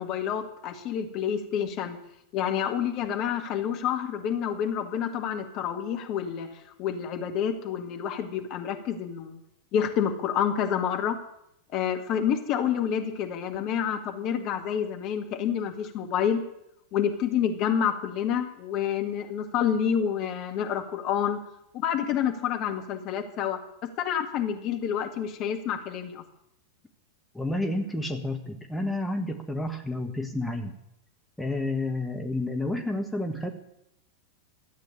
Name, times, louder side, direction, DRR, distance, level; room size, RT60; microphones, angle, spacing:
voice 1, 0.0-2.0 2.3-6.5 6.8-9.4 9.7-11.2 11.7-16.4 16.9-21.4 21.7-26.2, left 8 dB, 40° left, 5 dB, 1.9 m, -28 dB
voice 2, 27.3-30.7 31.4-33.5, left 2 dB, 5° left, 3 dB, 1.5 m, -30 dB
13.0 x 8.9 x 9.9 m, 0.79 s
figure-of-eight pair, 90°, 0 cm